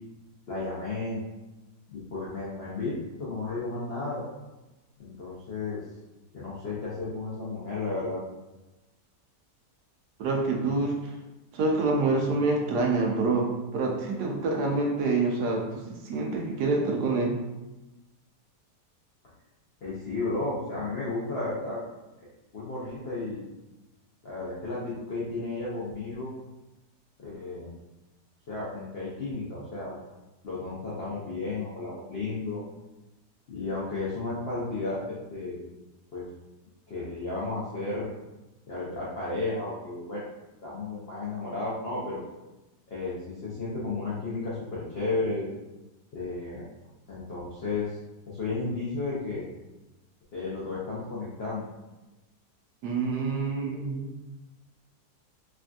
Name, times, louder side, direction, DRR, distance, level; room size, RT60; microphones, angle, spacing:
voice 1, 0.5-1.2 1.9-2.9 3.2-4.2 5.0-5.8 6.3-8.2 19.8-21.8 22.5-23.4 24.2-26.3 27.2-27.7 28.5-30.0 30.4-32.6 33.5-35.6 36.1-36.3 36.9-38.1 38.7-40.2 40.6-42.2 42.9-43.2 43.4-45.5 46.1-46.7 47.1-47.9 48.3-49.5 50.3-51.6, left 3 dB, 70° left, -8 dB, 0.5 m, -33 dB
voice 2, 10.2-11.1 11.5-17.4 52.8-54.1, right 3 dB, 75° right, 0 dB, 1.1 m, -27 dB
3.4 x 2.5 x 2.2 m, 1.0 s
omnidirectional pair, 1.9 m